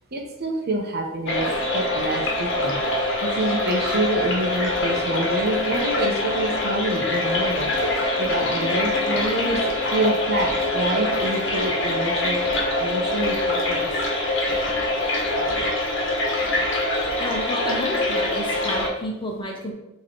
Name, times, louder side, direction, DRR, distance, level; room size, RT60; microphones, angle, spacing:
voice 1, 0.1-1.5 1.7-12.4 12.8-13.9, right 1 dB, 45° right, 1 dB, 1.0 m, -27 dB
sound 1, 1.3-18.9, left 1 dB, 55° left, 1.3 m, -24 dB
voice 2, 17.2-19.7, equal, 20° left, -1 dB, 1.1 m, -30 dB
6.7 x 3.2 x 4.5 m, 0.96 s
head